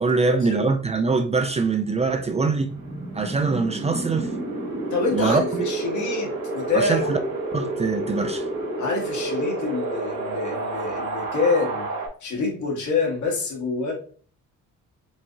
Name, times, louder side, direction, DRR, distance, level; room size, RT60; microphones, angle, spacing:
voice 1, 0.0-2.7 3.1-4.3 5.1-5.6 6.7-7.2 7.5-8.4, right 4 dB, 20° right, 0.3 m, -23 dB
Wind, 1.9-12.1, right 2 dB, 50° right, 1.7 m, -30 dB
voice 2, 4.9-7.1 8.8-11.9 12.2-13.9, left 3 dB, 70° left, 1.4 m, -26 dB
4.6 x 2.7 x 2.5 m
cardioid pair, 90°, 30 cm